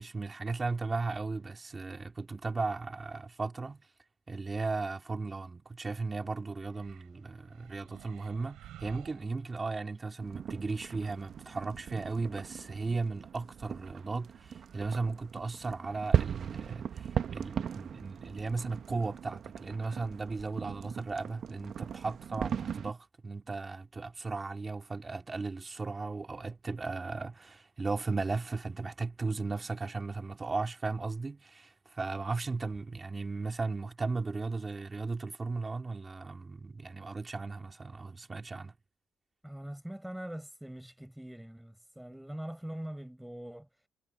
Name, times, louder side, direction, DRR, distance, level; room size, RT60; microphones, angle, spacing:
voice 1, 0.0-3.9 4.3-38.8, right 3 dB, 25° right, 2.5 m, -36 dB
sound 1, 6.6-10.0, right 13 dB, 85° right, 5.8 m, -53 dB
sound 2, 10.2-22.9, right 8 dB, 60° right, 1.1 m, -37 dB
voice 2, 39.4-43.7, right 1 dB, 5° right, 5.7 m, -42 dB
cardioid pair, 90°, 0 cm